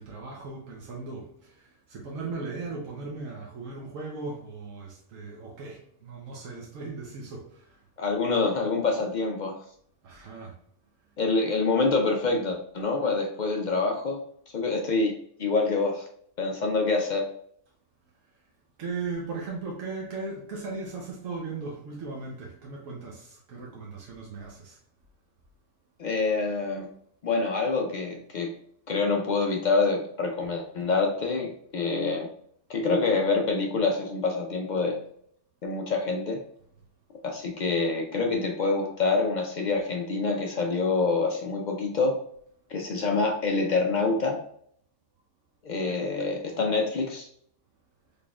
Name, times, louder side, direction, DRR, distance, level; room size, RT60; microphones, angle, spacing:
voice 1, 0.0-7.8 10.0-10.6 18.8-24.8 45.9-46.0, right 3 dB, 90° right, 1.2 m, -37 dB
voice 2, 8.0-9.5 11.2-14.2 14.5-15.1 15.4-16.0 16.4-17.2 26.0-26.9 27.2-28.5 28.9-32.3 32.7-35.0 35.6-36.4 37.2-42.1 42.7-44.4 45.6-47.3, left 3 dB, 65° left, 0.4 m, -26 dB
4.0 x 3.4 x 2.3 m
omnidirectional pair, 1.3 m